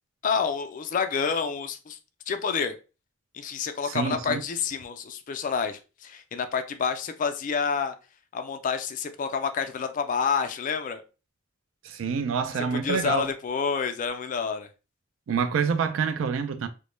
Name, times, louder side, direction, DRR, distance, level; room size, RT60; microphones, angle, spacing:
voice 1, 0.2-2.0 2.3-2.7 3.3-7.9 8.3-11.0 12.8-14.7, left 6 dB, 40° left, 0.3 m, -28 dB
voice 2, 3.8-4.4 11.8-13.3 15.3-16.7, right 6 dB, 70° right, 0.3 m, -27 dB
2.1 x 2.0 x 3.0 m
head